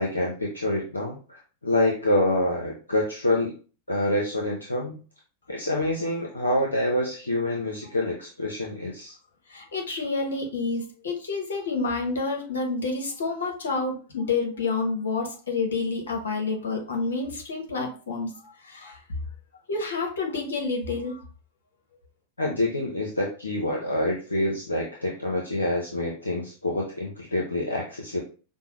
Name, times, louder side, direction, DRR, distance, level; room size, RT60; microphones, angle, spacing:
voice 1, 0.0-3.5 3.9-5.0 5.5-9.1 22.4-28.2, left 1 dB, 90° left, -2 dB, 0.7 m, -26 dB
voice 2, 9.5-19.0 19.7-21.2, left 3 dB, 75° left, 2 dB, 1.1 m, -29 dB
5.3 x 2.1 x 3.0 m, 0.37 s
figure-of-eight pair, 95°, 0 cm